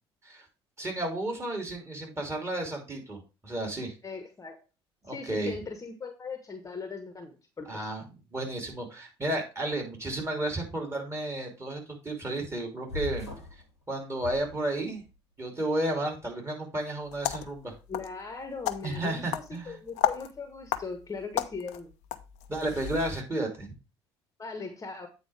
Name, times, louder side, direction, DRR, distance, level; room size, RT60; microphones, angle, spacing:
voice 1, 0.8-3.9 5.0-5.5 7.7-13.3 13.9-15.0 15.4-17.7 18.8-19.8 22.5-23.7, right 1 dB, 20° right, 1 dB, 2.8 m, -32 dB
voice 2, 4.0-4.6 5.1-7.9 17.9-21.9 24.4-25.1, left 4 dB, 25° left, 7 dB, 1.2 m, -39 dB
sound 1, 12.9-13.6 14.2-15.1, left 2 dB, 85° left, 1.1 m, -39 dB
sound 2, 17.1-23.2, left 12 dB, 55° left, 0.6 m, -35 dB
8.3 x 4.2 x 4.6 m, 0.29 s
figure-of-eight pair, 55°, 14 cm